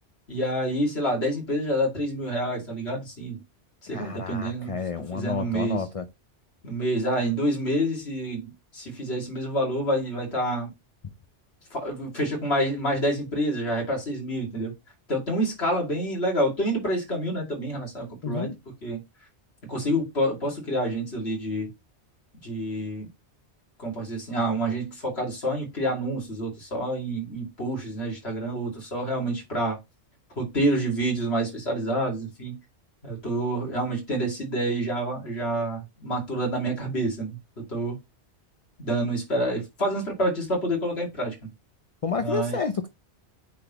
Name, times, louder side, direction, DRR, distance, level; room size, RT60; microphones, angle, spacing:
voice 1, 0.3-3.4 3.9-4.8 5.1-5.8 6.6-10.7 11.7-14.7 15.1-18.5 18.8-19.0 19.7-21.7 22.4-23.1 23.8-29.8 30.4-32.6 33.0-37.4 37.7-38.0 38.8-41.3 42.2-42.6, right 1 dB, 60° left, 2.6 m, -28 dB
voice 2, 3.9-6.0 18.2-18.5 42.0-42.9, left 5 dB, 40° left, 0.5 m, -30 dB
8.4 x 4.0 x 3.0 m
omnidirectional pair, 1.2 m